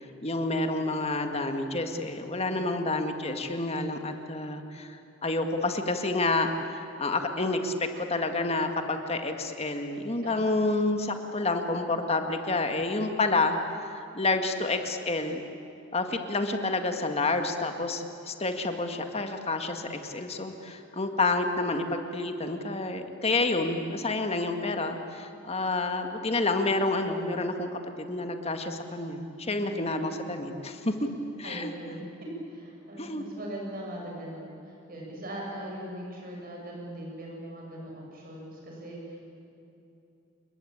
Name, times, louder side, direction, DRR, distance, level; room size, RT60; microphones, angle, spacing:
voice 1, 0.2-13.6 13.9-15.4 15.9-27.7 28.0-31.1 31.4-31.7 33.0-33.2, left 2 dB, 30° left, 6 dB, 1.9 m, -29 dB
voice 2, 10.2-10.6 29.4-29.7 31.4-32.0 32.5-39.2, right 1 dB, 45° right, -2 dB, 7.5 m, -40 dB
29.5 x 20.5 x 8.9 m, 2.8 s
head